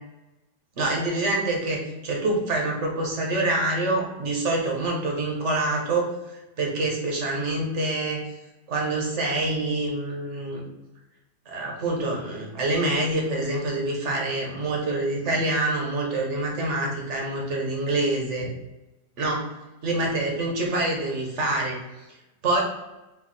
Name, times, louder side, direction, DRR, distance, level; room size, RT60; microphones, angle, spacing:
voice 1, 0.8-6.1 6.6-8.2 8.7-10.6 11.5-18.5 19.2-19.5 19.8-21.8 22.4-22.6, right 2 dB, 45° right, -1 dB, 1.1 m, -26 dB
4.5 x 2.6 x 4.0 m, 1.0 s
omnidirectional pair, 1.9 m